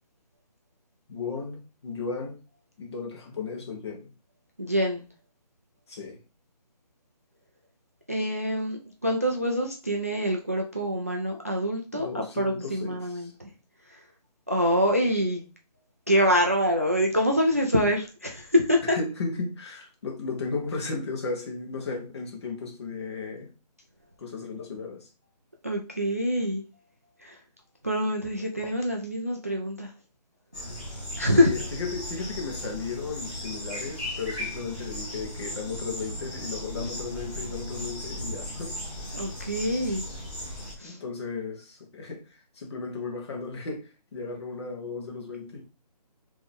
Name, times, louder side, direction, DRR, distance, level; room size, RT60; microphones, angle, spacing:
voice 1, 1.1-2.4 2.8-4.1 5.9-6.2 11.9-13.3 18.9-23.5 24.2-25.1 31.3-38.8 40.8-45.6, left 4 dB, 40° left, 1.4 m, -35 dB
voice 2, 4.6-5.0 8.1-13.5 14.5-15.4 16.1-19.0 25.6-26.6 27.2-27.4 27.8-29.9 31.2-31.5 39.1-40.0 40.8-41.0, equal, 25° right, 0.3 m, -25 dB
sound 1, 30.5-40.7, equal, 15° left, 1.7 m, -36 dB
4.7 x 3.0 x 3.5 m
figure-of-eight pair, 165°, 21 cm